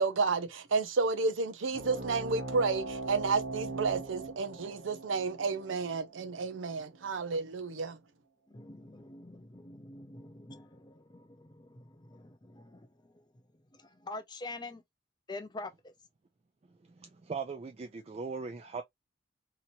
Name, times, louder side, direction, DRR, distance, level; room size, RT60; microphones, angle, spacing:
voice 1, 0.0-8.0, right 4 dB, 90° right, 0.6 m, -31 dB
sound 1, 1.7-6.8, right 2 dB, 65° right, 0.9 m, -41 dB
voice 2, 8.5-13.2 13.7-14.8 15.3-15.9, left 2 dB, 20° left, 0.5 m, -46 dB
voice 3, 17.0-18.8, right 4 dB, 30° right, 0.3 m, -39 dB
2.9 x 2.8 x 2.6 m
head